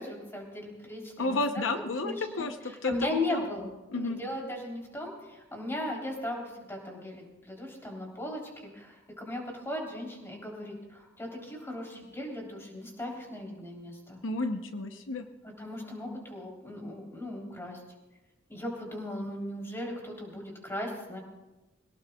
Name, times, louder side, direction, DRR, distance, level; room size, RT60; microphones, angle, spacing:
voice 1, 0.0-1.6 2.0-14.2 15.6-17.8 18.5-21.2, left 1 dB, 15° left, -1 dB, 3.4 m, -37 dB
voice 2, 1.2-3.4 3.9-4.2 14.2-15.3, left 3 dB, 80° left, 7 dB, 0.8 m, -32 dB
22.5 x 17.5 x 2.3 m, 1.1 s
head